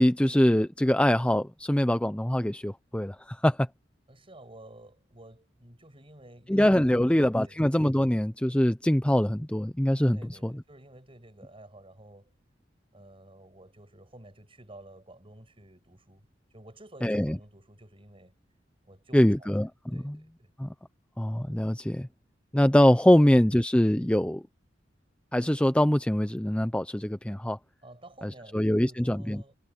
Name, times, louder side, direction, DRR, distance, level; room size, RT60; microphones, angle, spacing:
voice 1, 0.0-3.7 6.5-10.5 17.0-17.4 19.1-20.2 20.6-20.7 21.2-22.1 22.5-24.4 25.3-27.6 28.2-29.4, equal, 5° left, 0.6 m, -23 dB
voice 2, 4.1-7.6 10.1-12.3 12.9-18.4 18.8-19.5 19.9-20.5 27.8-29.6, right 1 dB, 30° right, 7.5 m, -52 dB
head